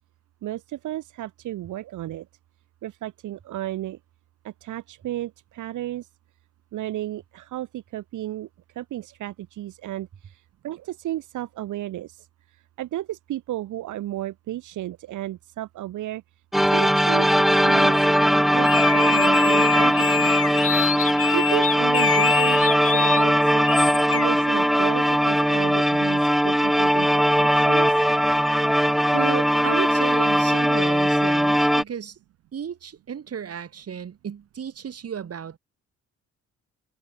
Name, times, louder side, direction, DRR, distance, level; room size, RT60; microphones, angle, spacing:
voice 1, 0.4-2.3 2.8-4.0 4.4-6.1 6.7-8.5 8.8-12.3 12.8-16.2 16.7-18.1 18.5-20.6 21.3-22.6 22.9-23.7 24.1-28.0, right 14 dB, 80° right, 2.2 m, -33 dB
sound 1, 16.5-31.8, equal, ahead, 0.6 m, -20 dB
sound 2, 18.6-23.2 23.6-24.3, left 8 dB, 45° left, 1.4 m, -26 dB
voice 2, 29.1-32.2 32.5-35.6, right 8 dB, 50° right, 7.2 m, -33 dB
cardioid pair, 90°, 30 cm